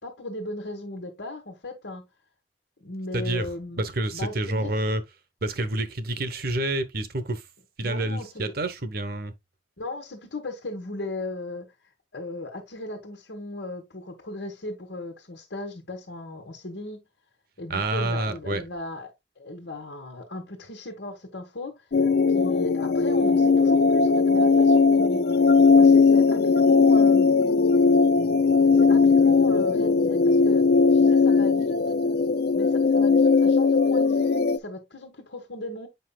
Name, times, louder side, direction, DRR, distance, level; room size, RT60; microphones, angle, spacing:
voice 1, 0.0-2.0 2.8-3.9 4.1-4.7 7.8-8.5 9.8-11.7 12.1-17.0 17.6-19.1 19.4-21.9 22.3-25.2 25.8-27.4 28.7-32.0 32.5-35.9, left 2 dB, 75° left, 1.5 m, -37 dB
voice 2, 3.1-3.5 3.8-5.0 5.4-7.4 7.8-9.3 17.7-18.6, right 1 dB, 55° right, 1.0 m, -28 dB
sound 1, 21.9-34.6, left 4 dB, 60° left, 0.4 m, -19 dB
8.0 x 5.7 x 2.3 m
head